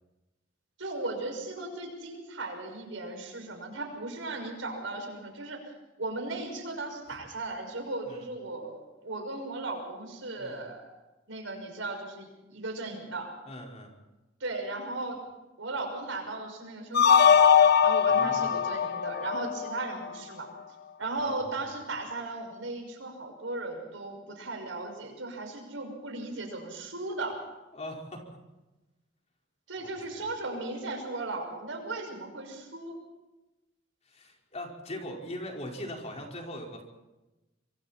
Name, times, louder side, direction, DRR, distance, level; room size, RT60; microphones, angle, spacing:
voice 1, 0.8-5.6 6.0-10.9 11.3-13.3 14.4-15.2 15.6-20.5 21.0-27.4 29.7-33.0, right 2 dB, 85° right, 3 dB, 6.2 m, -36 dB
voice 2, 13.4-13.9 18.1-18.5 21.2-21.6 27.7-28.2 29.8-30.2 34.1-36.8, left 1 dB, 35° left, 0 dB, 4.8 m, -41 dB
sound 1, 16.9-20.1, left 7 dB, 55° left, 0.9 m, -21 dB
26.0 x 23.5 x 4.4 m, 1.0 s
head